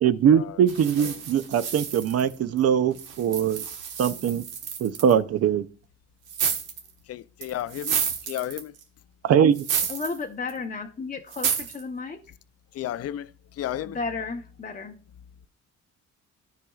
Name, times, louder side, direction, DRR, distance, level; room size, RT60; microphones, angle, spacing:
voice 1, 0.0-3.6 4.0-4.4 4.8-5.7 9.2-9.6, right 8 dB, 55° right, 0.5 m, -21 dB
sound 1, 0.7-2.6 3.0-5.1 6.3-6.9 7.4-8.8 9.5-10.2 10.5-10.6 11.3-11.8, right 7 dB, 85° right, 1.2 m, -30 dB
voice 2, 7.1-8.0 8.3-8.7 12.7-13.3 13.6-14.0, left 12 dB, 55° left, 0.4 m, -32 dB
voice 3, 9.9-12.2 13.8-15.0, left 4 dB, 25° left, 0.7 m, -33 dB
13.0 x 4.9 x 2.3 m
cardioid pair, 90°, 30 cm